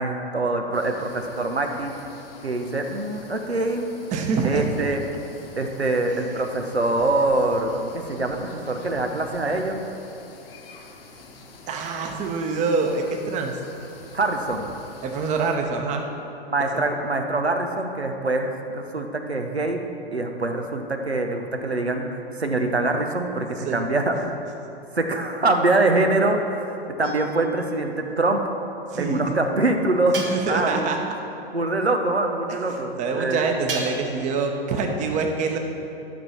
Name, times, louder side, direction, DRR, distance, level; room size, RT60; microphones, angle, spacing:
voice 1, 0.0-1.9 2.4-3.9 4.4-5.0 5.6-9.8 14.1-14.7 16.5-19.8 20.1-24.4 24.9-28.4 29.0-30.9 31.5-33.5, right 2 dB, 85° right, 4 dB, 1.0 m, -24 dB
sound 1, 0.7-15.6, left 2 dB, 65° left, 1.5 m, -46 dB
voice 2, 4.1-4.7 11.7-13.5 15.0-16.1 16.6-16.8 23.6-23.9 28.9-29.2 30.3-31.0 33.0-35.6, right 4 dB, 25° right, 3 dB, 1.0 m, -25 dB
sound 2, 27.0-27.7 30.1-30.9 33.7-34.3, right 3 dB, 60° right, 1.8 m, -34 dB
12.0 x 6.5 x 5.8 m, 2.9 s
figure-of-eight pair, 105°, 31 cm